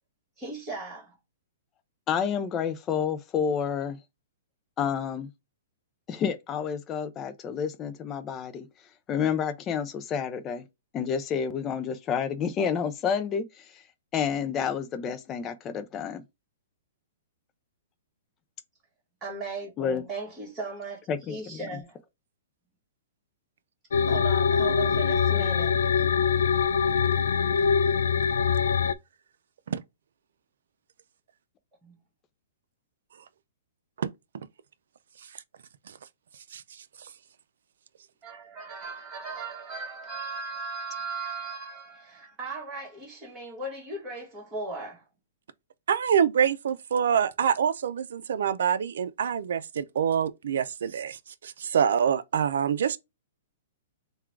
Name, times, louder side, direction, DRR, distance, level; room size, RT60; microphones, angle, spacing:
voice 1, 0.4-1.2 19.2-22.0 24.0-25.8 31.8-32.0 38.2-45.0, right 3 dB, 15° right, 1.7 m, -37 dB
voice 2, 2.1-4.0 4.8-5.3 6.1-8.7 9.1-10.6 10.9-13.8 14.1-16.2 19.8-20.0 21.1-21.6, left 7 dB, 20° left, 0.5 m, -29 dB
sound 1, 23.9-28.9, left 6 dB, 90° left, 0.4 m, -23 dB
voice 3, 45.9-51.2 51.4-53.0, right 8 dB, 75° right, 0.5 m, -25 dB
3.7 x 2.3 x 4.5 m
hypercardioid pair, 155°, 0 cm